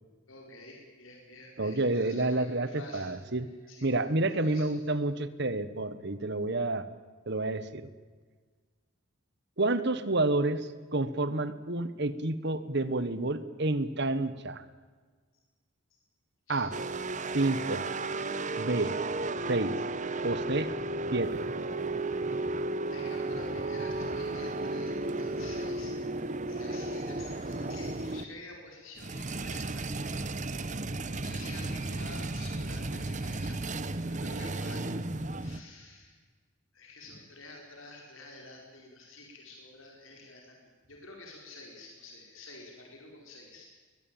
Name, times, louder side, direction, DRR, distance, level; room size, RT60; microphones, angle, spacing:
voice 1, 0.3-3.1 3.7-4.8 16.5-16.6 22.9-30.2 31.2-34.8 35.4-36.2 36.7-40.6 40.9-43.7, left 2 dB, 65° left, 1 dB, 4.7 m, -49 dB
voice 2, 1.6-3.5 3.8-6.9 7.3-7.9 9.6-14.6 16.5-16.7 17.3-17.8 18.6-18.9 19.5-19.8 20.2-20.8 21.1-21.4, right 2 dB, 50° right, 14 dB, 1.4 m, -29 dB
sound 1, 16.7-28.2 29.0-35.6, right 2 dB, 35° right, 1.0 m, -34 dB
22.0 x 21.0 x 9.0 m, 1.5 s
head